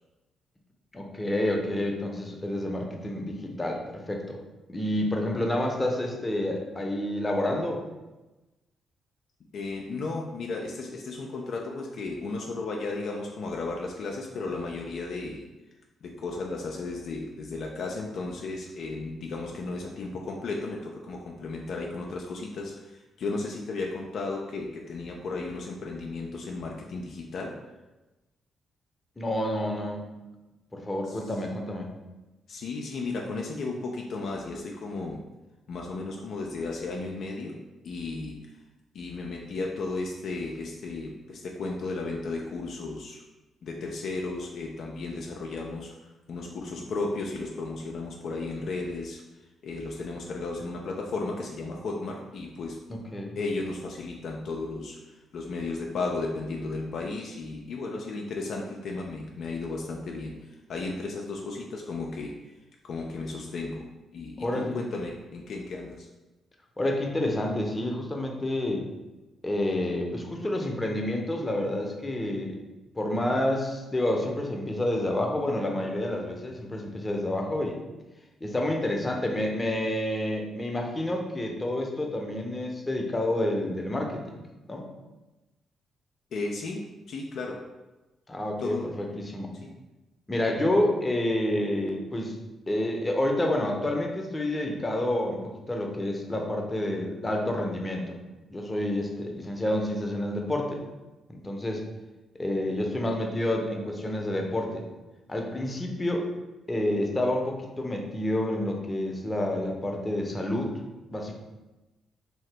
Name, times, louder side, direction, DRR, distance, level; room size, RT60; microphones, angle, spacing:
voice 1, 0.9-4.4 4.7-7.8 29.2-30.0 30.7-31.9 52.9-53.4 64.4-64.8 66.8-68.8 69.4-72.6 73.0-77.8 78.4-84.4 84.7-84.9 88.3-88.7 89.2-89.5 90.3-92.3 92.7-98.2 98.5-100.8 101.3-101.8 102.4-104.8 105.3-106.3 106.7-110.7 111.1-111.3, left 1 dB, 25° left, 1 dB, 0.7 m, -29 dB
voice 2, 9.5-15.4 16.0-27.6 31.1-31.2 32.5-35.2 35.7-37.6 37.8-38.4 38.9-43.2 43.6-49.2 49.6-52.8 53.4-62.3 62.8-66.1 86.3-87.7 88.6-88.9 89.5-89.7, left 3 dB, 65° left, 0 dB, 0.3 m, -34 dB
2.8 x 2.7 x 3.3 m, 1.1 s
hypercardioid pair, 45°, 0 cm